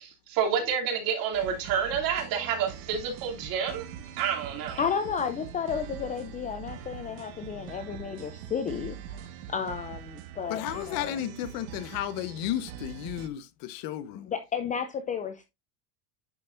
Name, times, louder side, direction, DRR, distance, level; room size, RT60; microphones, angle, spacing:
voice 1, 0.3-3.9 4.2-4.8, right 7 dB, 50° right, 3.0 m, -29 dB
sound 1, 1.3-13.3, right 9 dB, 70° right, 1.6 m, -43 dB
voice 2, 4.8-11.2 14.1-15.4, left 7 dB, 20° left, 0.5 m, -33 dB
voice 3, 10.5-14.3, left 12 dB, 50° left, 1.0 m, -33 dB
10.5 x 5.3 x 2.6 m
supercardioid pair, 150°, 45 cm